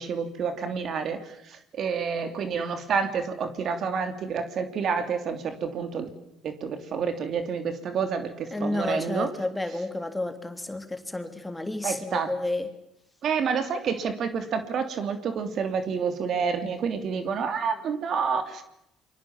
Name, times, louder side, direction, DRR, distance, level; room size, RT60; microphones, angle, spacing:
voice 1, 0.0-6.1 6.4-9.3 11.8-12.3 13.2-18.6, right 6 dB, 55° right, 8 dB, 3.2 m, -29 dB
voice 2, 8.5-12.7, left 2 dB, 10° left, 7 dB, 3.4 m, -31 dB
28.5 x 24.0 x 7.4 m, 0.82 s
supercardioid pair, 75°, 0 cm